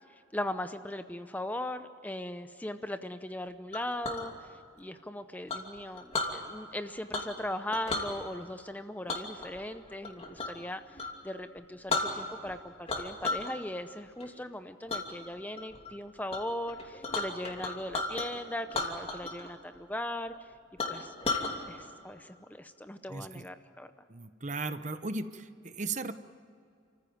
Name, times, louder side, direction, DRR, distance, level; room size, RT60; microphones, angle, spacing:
voice 1, 0.1-20.5 20.8-21.1 21.7-23.9, left 1 dB, 10° left, 9 dB, 0.6 m, -39 dB
Chink clink, 3.7-4.3 5.5-6.3 7.1-7.4 7.7-8.1 9.1-10.6 10.9-11.1 11.6-11.7 11.9-12.5 12.9-13.5 13.9-14.3 14.9-15.0 15.5-15.9 16.3-16.4 16.7-18.3 18.7-19.5 19.7-19.8 20.3-20.4 20.8-21.5, left 3 dB, 30° left, 2.8 m, -33 dB
voice 2, 23.1-23.5 24.1-26.1, right 3 dB, 40° right, 11 dB, 0.9 m, -36 dB
30.0 x 15.0 x 9.4 m, 2.4 s
head